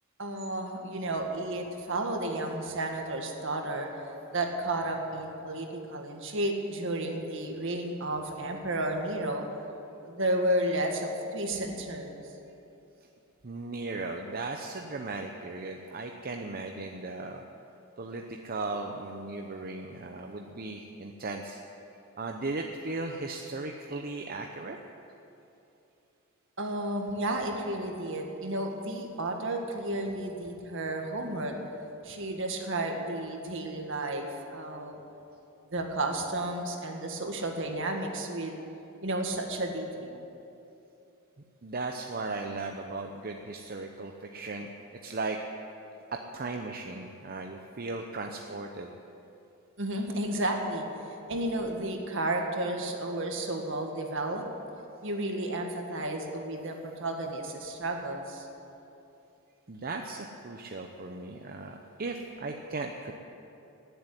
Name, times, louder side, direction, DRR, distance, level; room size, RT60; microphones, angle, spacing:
voice 1, 0.2-9.5 10.0-12.2 26.6-31.6 32.0-35.0 35.7-38.5 39.0-40.2 49.8-50.9 51.3-54.5 55.0-58.5, right 1 dB, 65° right, 3 dB, 1.9 m, -32 dB
voice 2, 13.4-17.4 18.0-21.6 22.2-24.8 41.6-44.7 45.0-45.4 46.1-48.9 59.7-63.1, right 3 dB, 45° right, 3 dB, 0.8 m, -37 dB
17.5 x 8.0 x 9.8 m, 2.8 s
head